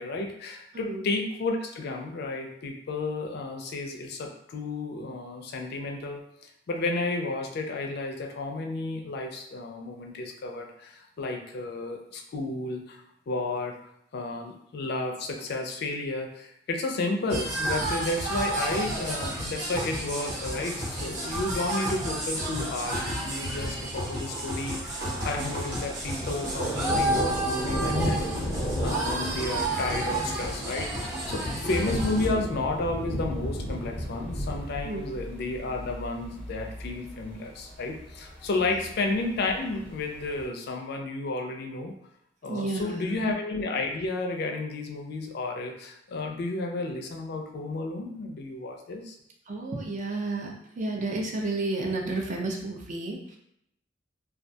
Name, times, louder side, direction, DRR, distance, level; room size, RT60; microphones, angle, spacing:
voice 1, 0.0-6.2 6.7-13.8 14.1-41.9 42.4-49.2, left 2 dB, 60° left, 3 dB, 0.4 m, -32 dB
sound 1, 17.3-32.3, right 1 dB, 80° right, 1.0 m, -31 dB
Thunder, 24.9-40.4, equal, 5° left, 0.9 m, -34 dB
voice 2, 42.5-43.2 49.5-53.4, right 2 dB, 45° right, 1 dB, 0.4 m, -32 dB
2.3 x 2.2 x 2.6 m, 0.75 s
head